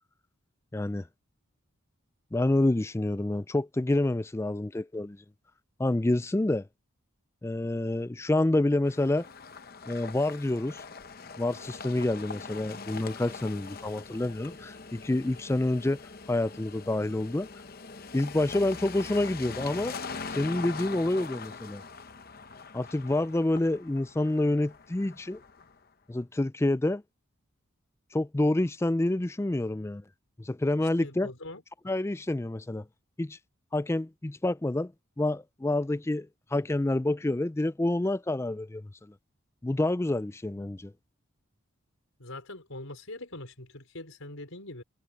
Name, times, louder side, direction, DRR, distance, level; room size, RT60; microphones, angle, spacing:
voice 1, 0.7-1.1 2.3-5.2 5.8-6.7 7.4-9.3 9.9-10.8 11.4-16.0 16.3-17.5 18.1-19.9 20.3-21.8 22.7-25.4 26.1-27.0 28.1-30.0 30.4-31.3 31.8-32.8 33.2-33.4 33.7-34.9 35.2-38.9 39.6-40.9, left 1 dB, 10° left, 0.3 m, -28 dB
sound 1, 8.8-25.8, left 4 dB, 45° left, 0.8 m, -42 dB
voice 2, 30.8-31.6 42.2-44.8, left 2 dB, 75° left, 4.8 m, -42 dB
head